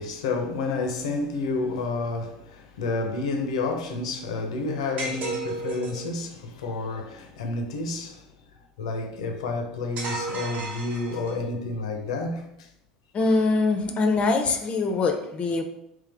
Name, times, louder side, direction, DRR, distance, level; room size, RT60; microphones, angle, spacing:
voice 1, 0.0-8.3 8.8-12.7, left 3 dB, 85° left, 0.8 m, -30 dB
sound 1, 5.0-6.2 10.0-11.5, right 2 dB, 45° right, 1.1 m, -33 dB
voice 2, 13.1-15.6, left 3 dB, 35° left, 0.7 m, -23 dB
3.6 x 3.3 x 3.4 m
hypercardioid pair, 90°, 3 cm